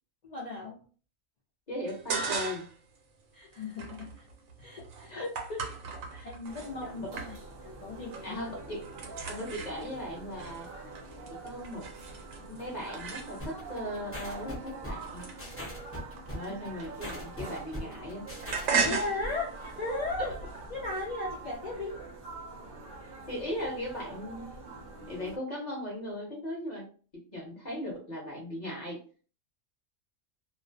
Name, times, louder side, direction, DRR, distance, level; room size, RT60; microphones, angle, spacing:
voice 1, 0.2-0.8 3.3-4.3 4.6-5.2 6.2-7.4 7.6-8.4 18.7-20.3 20.7-22.0, left 2 dB, 85° left, -4 dB, 0.3 m, -36 dB
voice 2, 1.7-2.7 5.1-5.6 6.1-6.3 6.8-6.9 8.2-8.8 9.3-10.7 11.3-11.9 12.5-15.2 16.3-18.3 18.7-19.0 23.3-24.6 25.1-29.0, left 1 dB, 40° left, -2 dB, 0.7 m, -38 dB
sound 1, 1.9-2.8 3.2-6.7 7.2-7.7 7.9-8.4 8.6-13.7 14.3-17.6 17.9-21.1, right 5 dB, 80° right, 1.0 m, -37 dB
sound 2, 6.4-25.4, right 3 dB, 55° right, 0.7 m, -45 dB
sound 3, 13.4-19.0, equal, 20° left, 0.4 m, -41 dB
2.4 x 2.0 x 2.5 m, 0.40 s
omnidirectional pair, 1.4 m